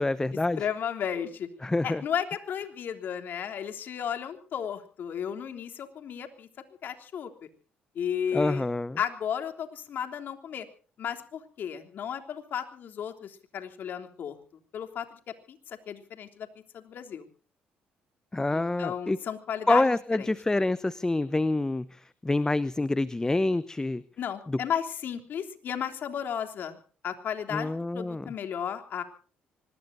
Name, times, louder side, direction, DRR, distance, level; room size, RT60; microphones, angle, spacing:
voice 1, 0.0-0.7 1.6-2.0 8.3-9.0 18.3-19.2 19.7-24.0 24.5-24.6 27.5-28.3, left 2 dB, 15° left, 16 dB, 0.9 m, -27 dB
voice 2, 0.6-1.5 1.8-6.5 6.8-7.3 7.9-8.7 9.0-10.7 11.0-14.4 14.7-15.2 15.5-16.5 16.7-17.2 18.5-19.9 20.2-20.3 24.2-26.8 27.0-29.0, left 8 dB, 60° left, 6 dB, 3.3 m, -34 dB
25.0 x 21.0 x 2.7 m, 0.40 s
hypercardioid pair, 60°, 4 cm